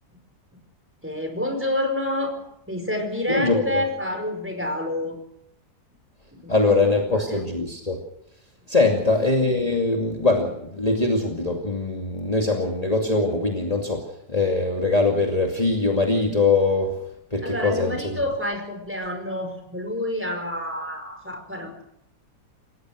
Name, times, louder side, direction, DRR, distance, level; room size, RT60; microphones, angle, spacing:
voice 1, 1.0-5.2 6.3-6.5 7.3-7.4 8.8-9.0 17.4-21.8, left 1 dB, 5° right, 4 dB, 4.9 m, -28 dB
voice 2, 3.3-3.8 6.5-8.0 8.7-14.0 14.3-16.9 17.3-18.2, left 3 dB, 25° left, 1 dB, 2.6 m, -22 dB
28.5 x 16.0 x 6.4 m, 0.76 s
omnidirectional pair, 1.7 m